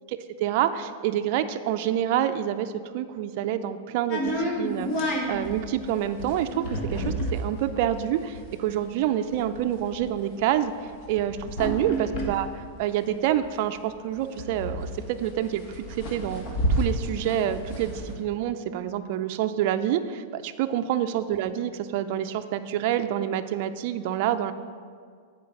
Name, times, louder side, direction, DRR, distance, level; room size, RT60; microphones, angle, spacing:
voice 1, 0.1-10.7 11.1-16.4 16.8-24.5, right 11 dB, 55° right, 9 dB, 0.4 m, -27 dB
sound 1, 4.1-13.6 13.9-14.0 14.2-18.1, equal, 50° left, 1.5 m, -31 dB
8.4 x 4.5 x 5.8 m, 2.1 s
hypercardioid pair, 120°, 0 cm